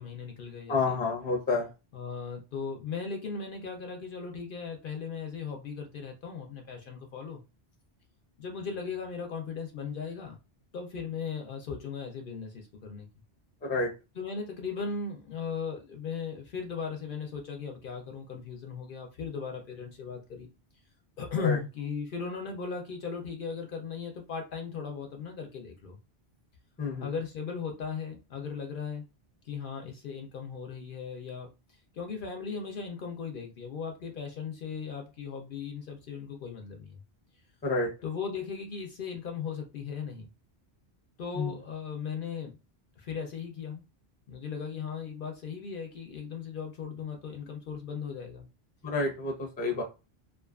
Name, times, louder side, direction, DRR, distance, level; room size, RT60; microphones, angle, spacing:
voice 1, 0.0-1.0 1.9-7.4 8.4-10.4 10.7-13.1 14.2-20.5 21.2-26.0 27.0-29.1 29.4-37.0 38.0-40.3 41.2-42.6 43.0-43.8 44.3-48.5, left 6 dB, 60° left, 0.6 m, -37 dB
voice 2, 0.7-1.7 13.6-13.9 21.4-21.6 26.8-27.1 37.6-37.9 41.4-41.5 48.8-49.8, left 3 dB, 10° left, 0.4 m, -29 dB
2.4 x 2.3 x 2.3 m
omnidirectional pair, 1.1 m